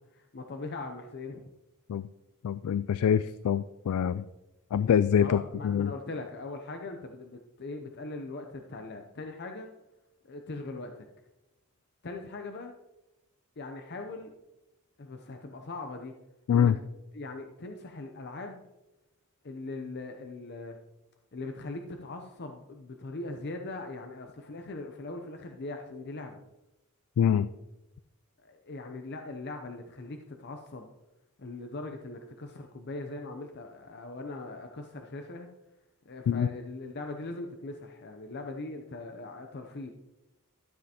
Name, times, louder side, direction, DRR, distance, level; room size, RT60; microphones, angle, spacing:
voice 1, 0.1-1.4 5.2-9.7 10.2-11.1 12.0-12.7 13.6-14.3 15.0-16.1 16.5-16.7 17.1-18.6 19.4-20.8 21.3-26.4 28.4-30.9 31.4-35.5 36.1-39.9, left 2 dB, 50° left, 4 dB, 0.7 m, -40 dB
voice 2, 2.4-4.2 4.7-5.9 16.5-16.8 27.2-27.5 36.3-36.5, left 8 dB, 75° left, 15 dB, 0.3 m, -25 dB
13.0 x 7.6 x 2.9 m, 0.96 s
head